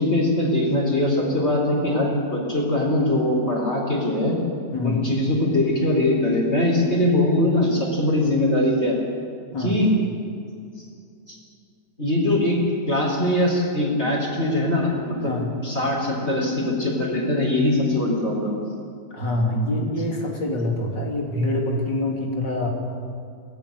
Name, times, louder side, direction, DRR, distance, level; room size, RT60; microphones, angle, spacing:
voice 1, 0.0-4.3 4.8-8.9 9.6-9.9 10.8-10.9 11.3-11.4 12.0-12.6 12.9-15.3 15.6-18.6, left 1 dB, 35° left, -4 dB, 4.6 m, -22 dB
voice 2, 19.1-22.7, left 1 dB, 90° left, 0 dB, 3.8 m, -25 dB
23.5 x 17.5 x 6.8 m, 2.4 s
omnidirectional pair, 1.9 m